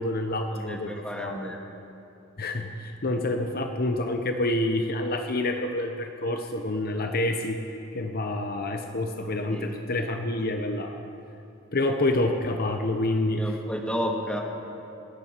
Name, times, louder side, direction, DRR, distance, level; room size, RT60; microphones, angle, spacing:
voice 1, 0.0-1.4 2.4-7.6 7.9-11.0 11.7-13.6, left 1 dB, 45° left, 5 dB, 0.8 m, -28 dB
voice 2, 0.5-1.6 9.5-9.7 13.4-14.4, equal, 5° left, -1 dB, 1.8 m, -31 dB
30.0 x 10.5 x 4.5 m, 2.8 s
head